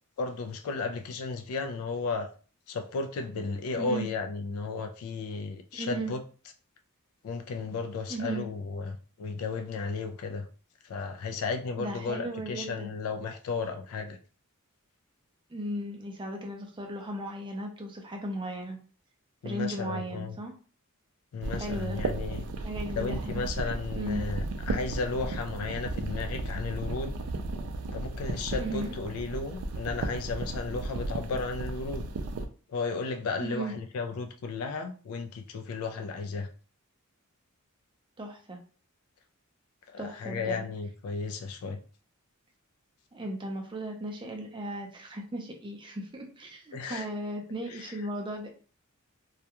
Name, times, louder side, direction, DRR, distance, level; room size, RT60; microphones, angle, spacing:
voice 1, 0.2-2.3 2.7-6.2 7.2-10.5 10.8-14.2 19.4-20.4 21.3-22.4 23.0-27.1 27.9-32.1 32.7-36.5 39.9-41.8 46.7-47.1 47.7-48.0, left 4 dB, 70° left, 6 dB, 0.3 m, -34 dB
voice 2, 3.8-4.1 5.7-6.1 8.1-8.5 11.8-12.9 15.5-18.8 19.4-20.5 21.6-22.0 22.6-23.4 23.9-24.2 28.6-28.9 33.4-33.7 38.2-38.6 40.0-40.7 43.1-48.5, right 1 dB, 20° right, 2 dB, 0.5 m, -36 dB
sound 1, 21.4-32.5, right 2 dB, 85° right, 0.4 m, -34 dB
2.3 x 2.2 x 2.8 m, 0.39 s
head